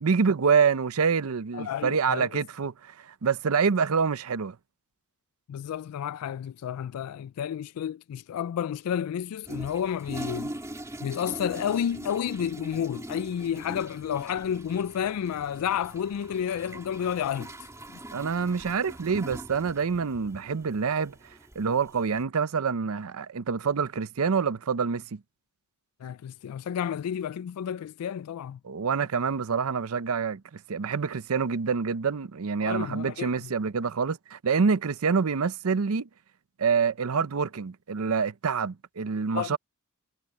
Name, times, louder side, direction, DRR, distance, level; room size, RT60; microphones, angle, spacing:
voice 1, 0.0-4.6 18.1-21.2 21.6-25.2 28.6-36.1 36.6-39.6, right 5 dB, 70° right, 0.6 m, -26 dB
voice 2, 1.5-2.3 5.5-10.5 11.0-17.7 26.0-28.6 32.6-33.5 39.3-39.6, left 9 dB, 90° left, 0.3 m, -31 dB
Toilet flush, 9.4-22.2, right 1 dB, 15° right, 2.5 m, -42 dB
head